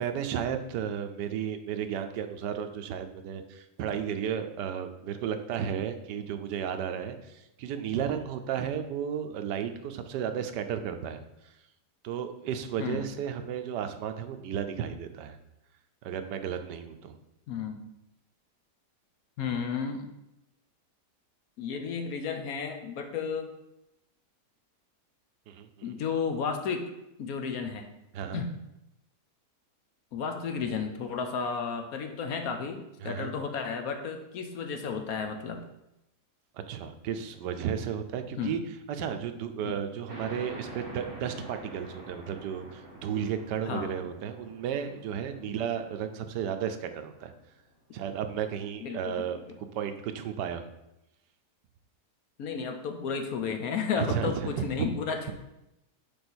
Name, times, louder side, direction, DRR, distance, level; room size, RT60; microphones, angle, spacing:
voice 1, 0.0-11.2 12.0-15.4 16.0-17.2 25.5-25.7 28.1-28.4 33.0-33.3 36.5-38.6 39.0-47.3 47.9-49.4 49.7-50.7 54.0-54.9, right 8 dB, 85° right, 8 dB, 1.3 m, -33 dB
voice 2, 12.8-13.1 17.5-17.8 19.4-20.1 21.6-23.5 25.8-26.9 27.2-27.9 28.3-28.5 30.1-35.6 38.4-38.6 39.6-39.8 43.6-44.0 48.8-49.3 52.4-55.3, left 6 dB, 65° left, 6 dB, 1.1 m, -33 dB
sound 1, 40.1-47.2, equal, 35° right, 2.0 m, -47 dB
5.2 x 4.4 x 6.1 m, 0.90 s
omnidirectional pair, 1.8 m